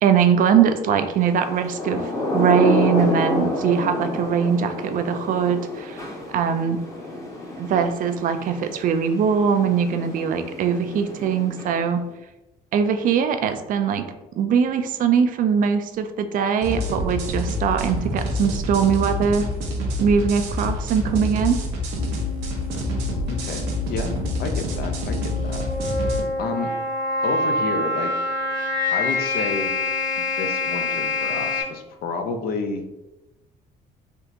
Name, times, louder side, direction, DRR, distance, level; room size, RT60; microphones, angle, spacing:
voice 1, 0.0-6.0 6.3-6.8 7.6-12.0 12.7-14.1 14.4-19.5 20.0-21.6, right 7 dB, 55° right, 8 dB, 0.4 m, -21 dB
Thunder / Rain, 1.5-12.0, left 1 dB, 15° left, 0.7 m, -29 dB
sound 1, 16.6-26.2, left 1 dB, 90° right, 0.6 m, -27 dB
sound 2, 22.0-31.6, left 3 dB, 45° left, 1.1 m, -27 dB
voice 2, 23.3-25.6 26.4-26.7 27.2-28.1 28.9-29.7 30.2-32.8, left 4 dB, 65° left, 6 dB, 0.5 m, -30 dB
3.5 x 2.4 x 2.8 m, 0.98 s
cardioid pair, 110°, 17 cm